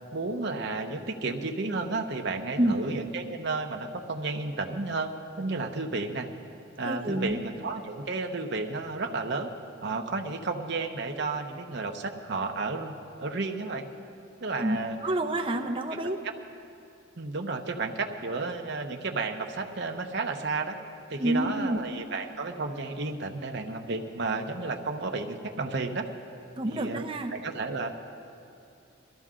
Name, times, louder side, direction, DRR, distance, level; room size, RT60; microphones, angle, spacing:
voice 1, 0.1-6.3 6.8-9.5 9.8-12.9 13.2-13.8 14.4-15.0 17.2-20.8 21.1-26.1 26.7-27.9, right 3 dB, 55° right, 3 dB, 0.9 m, -32 dB
voice 2, 6.8-7.4 14.6-16.2 21.2-21.8 26.5-27.3, right 1 dB, 25° right, 3 dB, 0.7 m, -28 dB
21.5 x 13.5 x 3.7 m, 2.6 s
head